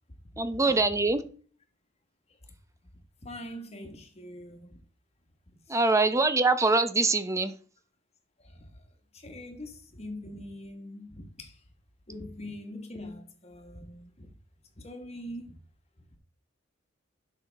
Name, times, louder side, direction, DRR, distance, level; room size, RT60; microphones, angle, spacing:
voice 1, 0.4-1.2 5.7-7.5, right 3 dB, 15° right, 0.6 m, -24 dB
voice 2, 3.2-4.8 8.4-8.8 9.1-11.6 12.1-14.3 14.7-15.6, left 1 dB, 30° left, 1.5 m, -43 dB
11.5 x 5.8 x 3.5 m
head